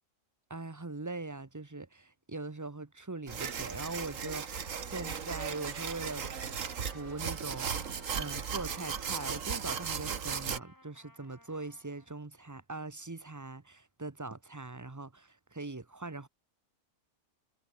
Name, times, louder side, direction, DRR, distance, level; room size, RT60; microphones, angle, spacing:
voice 1, 0.5-6.3 6.8-7.8 8.1-16.3, right 3 dB, 15° right, 0.8 m, -41 dB
sound 1, 3.3-10.6, right 7 dB, 70° right, 1.8 m, -37 dB
Trumpet, 4.4-12.2, left 1 dB, 15° left, 3.3 m, -57 dB
omnidirectional pair, 1.4 m